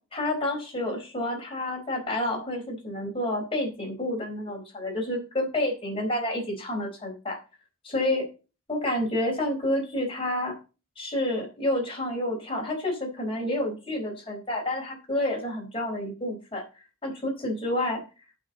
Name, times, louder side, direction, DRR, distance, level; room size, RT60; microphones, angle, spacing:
voice 1, 0.1-7.4 7.8-8.2 8.7-10.5 11.0-16.6 17.0-18.0, left 1 dB, 25° left, 0 dB, 4.4 m, -29 dB
15.5 x 6.0 x 4.1 m, 0.32 s
head